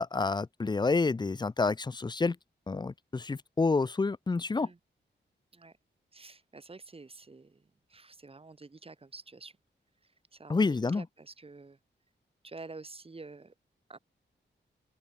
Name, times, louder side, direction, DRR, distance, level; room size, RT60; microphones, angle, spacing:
voice 1, 0.0-2.4 2.7-4.7 10.5-11.0, left 3 dB, 20° left, 0.6 m, -28 dB
voice 2, 6.1-9.6 10.0-11.8 12.4-13.5 13.9-14.0, right 3 dB, 30° right, 3.9 m, -49 dB
open air
wide cardioid pair, 140°, 19 cm